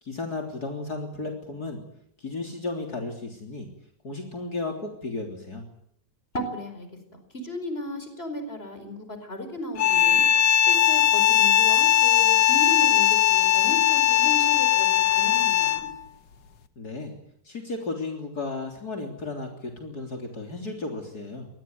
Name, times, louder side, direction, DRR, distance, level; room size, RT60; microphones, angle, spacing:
voice 1, 0.0-1.8 2.2-3.7 4.0-5.6 16.8-17.1 17.4-21.5, left 3 dB, 55° left, 3 dB, 4.0 m, -34 dB
voice 2, 6.3-6.9 7.1-10.2 10.6-15.9, left 1 dB, 30° left, 8 dB, 5.1 m, -35 dB
sound 1, 9.8-16.0, left 12 dB, 75° left, 2.1 m, -19 dB
26.0 x 20.0 x 9.4 m, 0.70 s
omnidirectional pair, 1.9 m